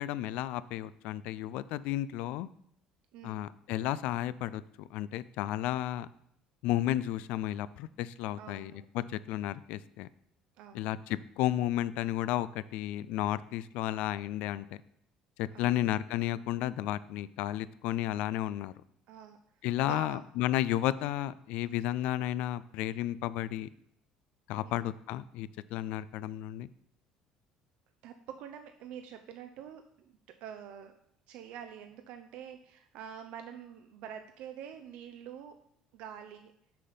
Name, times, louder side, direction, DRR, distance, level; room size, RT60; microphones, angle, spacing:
voice 1, 0.0-2.5 3.2-6.1 6.6-10.1 10.7-14.7 15.4-18.7 19.6-23.7 24.5-26.7, left 13 dB, 75° left, 17 dB, 0.3 m, -33 dB
voice 2, 3.1-3.5 8.4-8.9 10.6-11.0 15.5-15.8 19.1-19.4 19.8-20.2 24.6-24.9 28.0-30.9 31.3-35.6 35.9-36.5, right 8 dB, 70° right, 7 dB, 0.5 m, -46 dB
6.4 x 4.1 x 5.5 m, 0.71 s
cardioid pair, 130°, 2 cm